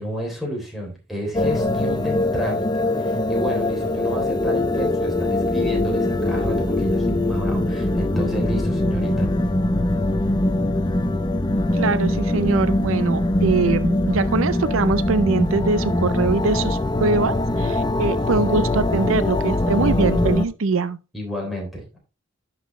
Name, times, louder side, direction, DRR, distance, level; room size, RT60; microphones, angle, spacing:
voice 1, 0.0-9.3 21.1-22.0, equal, ahead, 3.4 m, -31 dB
sound 1, 1.3-20.4, left 1 dB, 20° left, 0.6 m, -22 dB
voice 2, 11.7-21.0, right 4 dB, 80° right, 0.5 m, -22 dB
10.5 x 6.0 x 3.2 m
head